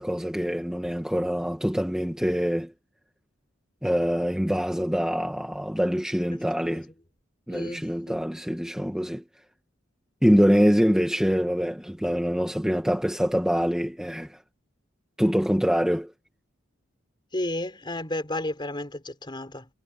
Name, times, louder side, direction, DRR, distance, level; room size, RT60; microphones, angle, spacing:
voice 1, 0.0-2.7 3.8-6.9 7.5-9.2 10.2-14.4 15.2-16.1, equal, 5° right, 1.5 m, -24 dB
voice 2, 6.3-6.8 7.5-8.3 17.3-19.7, left 1 dB, 25° left, 4.1 m, -33 dB
head